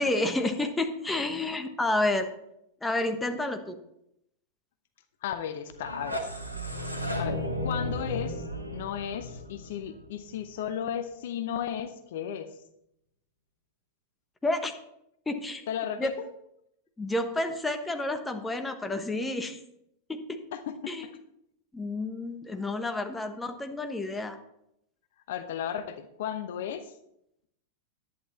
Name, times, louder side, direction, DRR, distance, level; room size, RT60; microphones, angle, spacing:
voice 1, 0.0-2.3 2.8-3.8 14.4-14.7 15.3-15.6 16.0-16.1 17.0-19.6 20.1-20.4 20.9-21.0 21.7-24.4, left 2 dB, 10° left, 6 dB, 1.3 m, -30 dB
voice 2, 5.2-6.3 7.2-8.4 8.7-12.6 15.7-16.3 20.5-21.0 25.3-26.9, left 9 dB, 55° left, 10 dB, 0.8 m, -34 dB
sound 1, 5.7-10.6, left 1 dB, 90° right, 1.4 m, -34 dB
11.0 x 9.4 x 4.3 m, 0.78 s
figure-of-eight pair, 90°, 0 cm